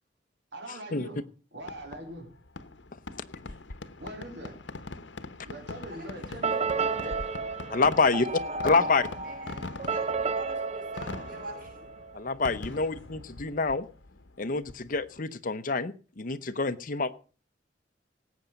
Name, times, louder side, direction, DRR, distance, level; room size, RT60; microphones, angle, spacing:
voice 1, 0.5-1.2 1.5-2.3 4.0-4.6 5.4-7.2, right 1 dB, 70° right, 0 dB, 4.4 m, -42 dB
Fireworks, 1.6-15.2, left 3 dB, 85° left, 1.0 m, -43 dB
voice 2, 5.9-6.3 8.0-8.9 9.2-11.8, right 1 dB, 50° right, 0 dB, 6.5 m, -46 dB
sound 1, 6.4-12.2, right 4 dB, 35° right, 0.8 m, -32 dB
voice 3, 7.7-8.3 8.6-9.1 12.1-13.9 14.4-17.1, left 3 dB, 50° left, 11 dB, 0.9 m, -27 dB
18.0 x 8.3 x 5.2 m, 0.38 s
head